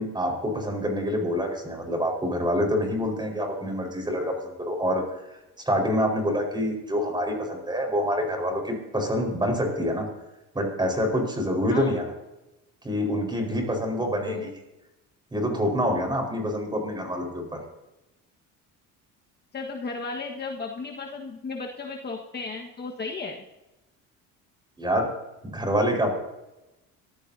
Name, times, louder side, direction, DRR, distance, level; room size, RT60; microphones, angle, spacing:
voice 1, 0.0-4.3 4.7-5.2 5.6-10.1 10.5-12.0 12.8-14.5 15.3-17.6 24.8-25.1 25.4-26.1, equal, 15° right, 3 dB, 4.7 m, -26 dB
voice 2, 19.5-23.4, left 4 dB, 30° left, 1 dB, 1.5 m, -34 dB
22.5 x 14.5 x 2.8 m, 0.99 s
cardioid pair, 115°, 32 cm